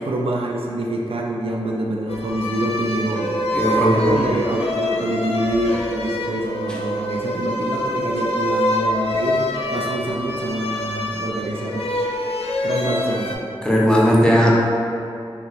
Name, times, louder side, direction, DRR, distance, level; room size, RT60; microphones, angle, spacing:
voice 1, 0.0-3.3 3.7-11.9 12.1-12.2 12.6-13.5, right 1 dB, 70° right, -1 dB, 0.4 m, -25 dB
sound 1, 2.1-13.3, left 1 dB, 85° left, 0.4 m, -25 dB
voice 2, 3.5-4.2 13.6-14.5, equal, 10° left, -4 dB, 0.6 m, -16 dB
2.9 x 2.2 x 3.9 m, 2.6 s
wide cardioid pair, 70°, 10 cm